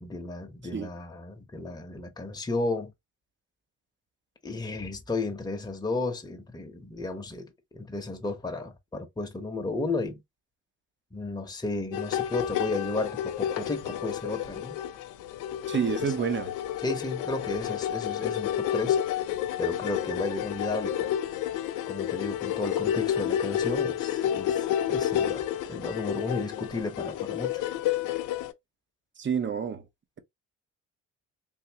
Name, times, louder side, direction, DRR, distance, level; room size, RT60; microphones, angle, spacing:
voice 1, 0.0-2.9 4.4-10.2 11.1-14.8 16.0-16.1 16.8-19.0 19.6-21.1 21.9-27.7, left 2 dB, 15° left, 0.9 m, -33 dB
sound 1, 11.9-28.5, left 10 dB, 85° left, 0.6 m, -30 dB
voice 2, 15.7-16.5 29.2-29.8, right 7 dB, 40° right, 0.8 m, -28 dB
3.5 x 2.7 x 2.8 m
cardioid pair, 90°, 30 cm